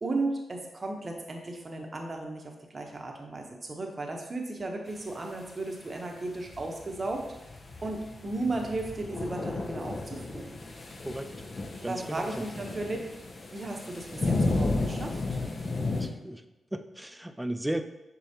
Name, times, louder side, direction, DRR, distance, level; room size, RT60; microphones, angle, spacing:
voice 1, 0.0-7.2 7.8-10.6 11.8-13.0 13.5-15.2, right 2 dB, 40° right, 2 dB, 0.8 m, -35 dB
sound 1, 6.4-16.1, left 2 dB, 45° left, 0.6 m, -33 dB
voice 2, 11.8-12.4 15.9-16.4 16.7-17.8, right 1 dB, 10° right, 8 dB, 0.4 m, -35 dB
6.4 x 2.3 x 2.8 m, 1.0 s
supercardioid pair, 45°, 0 cm